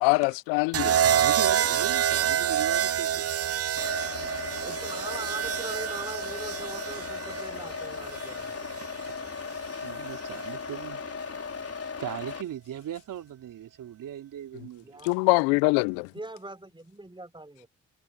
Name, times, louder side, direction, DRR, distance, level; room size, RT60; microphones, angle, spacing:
voice 1, 0.0-1.0 15.0-16.1, left 30 dB, 85° left, 0.5 m, -23 dB
sound 1, 0.7-8.9 10.1-10.5, right 9 dB, 45° right, 0.7 m, -27 dB
voice 2, 1.0-3.6 9.0-9.1 9.8-11.1 12.0-15.1, right 11 dB, 70° right, 3.6 m, -38 dB
sound 2, 3.8-12.4, left 5 dB, 45° left, 4.2 m, -37 dB
voice 3, 4.5-8.7 14.8-15.2 16.1-17.7, right 2 dB, 15° right, 4.4 m, -41 dB
hypercardioid pair, 45°, 34 cm